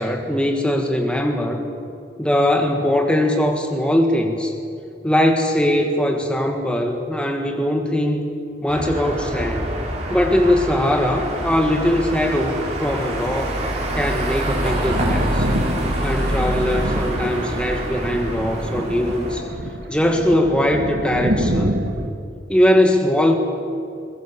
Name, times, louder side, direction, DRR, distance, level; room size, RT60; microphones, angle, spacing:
voice 1, 0.0-1.6 2.2-4.6 5.0-8.3 8.6-9.7 10.1-13.6 13.9-15.5 16.0-19.5 19.9-21.8 22.5-23.4, left 1 dB, 5° left, 3 dB, 1.6 m, -20 dB
sound 1, 8.7-19.4, right 1 dB, 40° right, 4.5 m, -26 dB
Thunder, 14.8-22.1, right 1 dB, 65° right, 1.8 m, -27 dB
22.5 x 21.5 x 7.4 m, 2.6 s
head